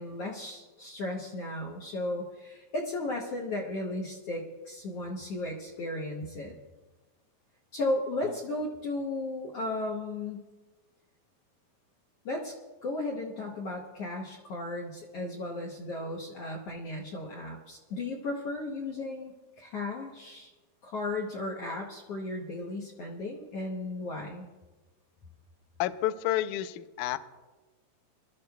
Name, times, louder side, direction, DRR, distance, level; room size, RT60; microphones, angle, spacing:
voice 1, 0.0-6.5 7.7-10.4 12.2-12.5 12.8-20.5 20.8-24.5, left 2 dB, 70° left, -1 dB, 1.5 m, -35 dB
voice 2, 25.8-27.2, left 14 dB, 85° left, 12 dB, 1.7 m, -30 dB
25.5 x 13.0 x 2.3 m, 1.2 s
omnidirectional pair, 4.0 m